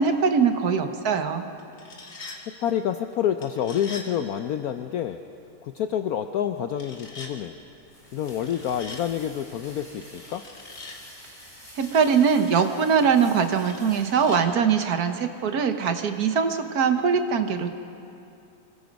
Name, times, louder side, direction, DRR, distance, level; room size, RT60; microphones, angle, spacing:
voice 1, 0.0-1.4 11.8-17.7, right 6 dB, 60° right, 7 dB, 1.5 m, -22 dB
sound 1, 1.6-2.4 3.4-4.1 6.7-7.3 8.3-9.0 10.0-11.0 11.8-12.7 13.5-14.4, left 3 dB, 45° left, 2.3 m, -43 dB
voice 2, 2.6-5.2 5.6-7.5 8.1-10.4, left 9 dB, 65° left, 8 dB, 1.0 m, -28 dB
sound 2, 7.0-14.9, equal, 20° left, 7.3 m, -49 dB
25.5 x 21.5 x 5.3 m, 2.8 s
omnidirectional pair, 1.9 m